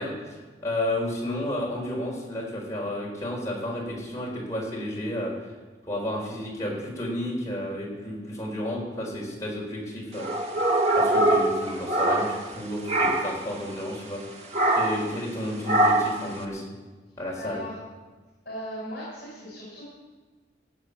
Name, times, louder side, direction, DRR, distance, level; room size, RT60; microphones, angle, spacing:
voice 1, 0.0-5.5 5.9-10.3 10.9-14.2 14.7-16.6 17.2-17.6, left 1 dB, 20° left, -3 dB, 4.4 m, -32 dB
sound 1, 10.2-12.6 12.9-13.4 14.5-15.1 15.7-16.2, right 1 dB, 35° right, 1.5 m, -23 dB
voice 2, 17.4-17.8 18.5-19.9, equal, 65° left, -6 dB, 5.2 m, -37 dB
18.0 x 7.5 x 7.1 m, 1.3 s
head